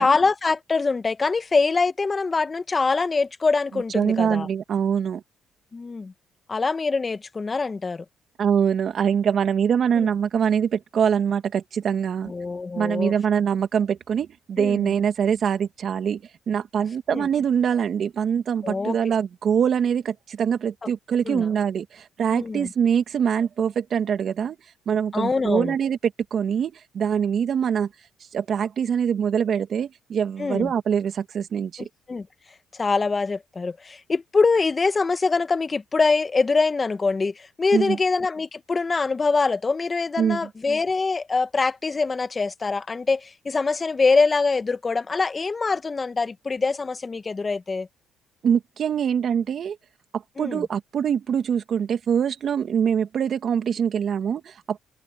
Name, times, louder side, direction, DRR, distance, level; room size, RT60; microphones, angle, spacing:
voice 1, 0.0-4.5 5.7-6.1 6.5-8.0 10.0-10.1 12.2-13.1 14.6-14.9 17.1-17.3 18.6-19.0 21.2-21.5 22.3-22.7 25.1-25.7 30.4-30.7 31.8-32.3 32.7-47.9 50.4-50.6, left 4 dB, 30° left, 1.6 m, -24 dB
voice 2, 3.9-5.2 8.4-12.3 12.7-24.6 24.9-26.0 26.3-27.9 28.3-31.9 37.7-38.0 40.2-40.4 48.4-49.8 50.1-54.8, right 7 dB, 55° right, 2.3 m, -24 dB
supercardioid pair, 75°, 0 cm